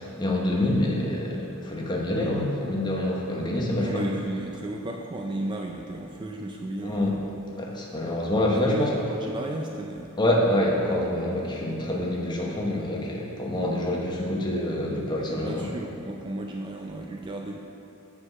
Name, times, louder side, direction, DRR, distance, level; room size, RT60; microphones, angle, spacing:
voice 1, 0.0-4.1 6.8-7.2 7.5-9.0 10.2-15.7, left 1 dB, 20° left, -2 dB, 0.9 m, -26 dB
voice 2, 3.7-7.2 8.5-10.1 15.3-17.6, right 1 dB, 20° right, 1 dB, 0.4 m, -34 dB
7.7 x 4.7 x 5.3 m, 2.7 s
head